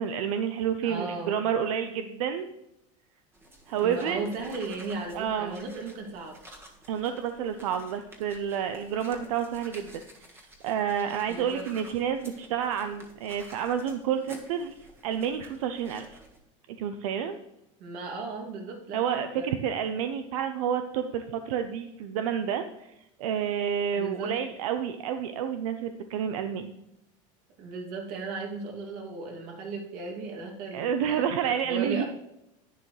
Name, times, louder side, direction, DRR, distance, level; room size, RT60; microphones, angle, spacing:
voice 1, 0.0-2.5 3.7-4.3 5.1-5.5 6.9-9.9 10.6-14.7 15.0-16.2 16.8-17.4 18.9-22.9 23.2-26.7 30.7-32.0, right 8 dB, 85° right, 8 dB, 0.7 m, -29 dB
voice 2, 0.8-1.4 3.7-6.4 11.3-11.7 17.8-19.5 23.9-24.4 27.6-32.0, right 3 dB, 55° right, 1 dB, 2.7 m, -36 dB
sound 1, 3.3-16.4, right 1 dB, 15° right, 1.6 m, -51 dB
11.0 x 9.3 x 3.3 m, 0.84 s
supercardioid pair, 120°, 17 cm